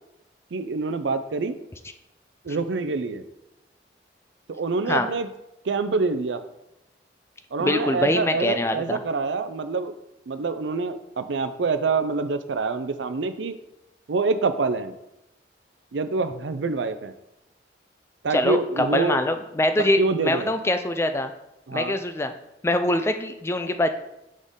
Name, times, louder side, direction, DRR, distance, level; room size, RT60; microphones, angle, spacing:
voice 1, 0.5-1.6 2.4-3.2 4.5-5.3 5.7-6.4 7.5-9.9 10.3-13.6 14.1-14.9 15.9-17.1 18.2-19.2 20.0-20.5 21.7-22.0, right 4 dB, 90° right, 11 dB, 0.5 m, -26 dB
voice 2, 7.6-9.0 18.3-21.3 21.7-22.3 22.6-23.9, left 1 dB, 15° left, 8 dB, 0.3 m, -24 dB
6.3 x 5.1 x 3.7 m, 0.89 s
head